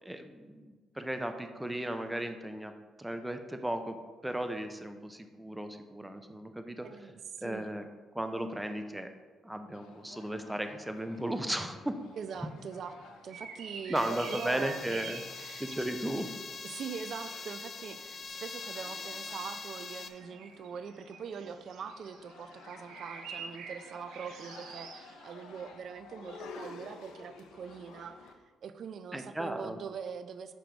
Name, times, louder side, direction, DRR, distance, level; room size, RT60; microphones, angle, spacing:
voice 1, 0.0-2.7 3.0-4.0 4.2-6.9 7.4-7.9 8.1-9.1 9.4-11.9 13.9-15.2 15.6-16.3 29.1-29.8, right 1 dB, 10° right, 7 dB, 0.6 m, -35 dB
voice 2, 6.8-7.7 12.1-12.9 13.2-15.2 16.6-28.3 28.6-30.5, right 6 dB, 60° right, 10 dB, 0.5 m, -42 dB
sound 1, 9.7-28.3, left 4 dB, 85° left, 0.7 m, -53 dB
sound 2, 13.3-16.3 16.6-18.0 18.4-19.1 19.5-25.4 26.2-26.4, right 6 dB, 85° right, 0.8 m, -47 dB
sound 3, 13.9-20.1, left 4 dB, 45° left, 0.6 m, -43 dB
6.8 x 5.1 x 4.6 m, 1.4 s
cardioid pair, 90°, 0 cm